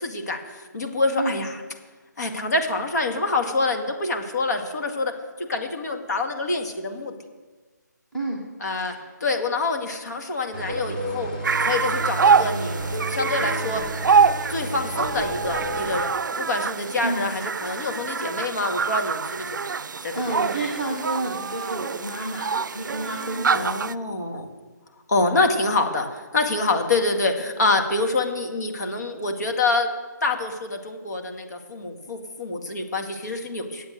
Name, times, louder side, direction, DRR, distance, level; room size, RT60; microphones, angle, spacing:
voice 1, 0.0-1.6 2.2-5.1 5.4-7.1 8.6-11.3 11.6-12.8 13.1-13.9 14.5-19.7 20.0-20.4 23.5-24.5 25.1-29.9 30.2-33.9, left 3 dB, 60° left, 3 dB, 2.0 m, -26 dB
sound 1, 10.5-16.0, right 1 dB, 30° left, 2.6 m, -31 dB
sound 2, 11.4-23.9, right 5 dB, 80° right, 0.4 m, -25 dB
voice 2, 17.0-17.3 20.1-23.6, right 2 dB, 5° left, -5 dB, 0.8 m, -30 dB
9.0 x 7.9 x 9.2 m, 1.3 s
hypercardioid pair, 175°, 10 cm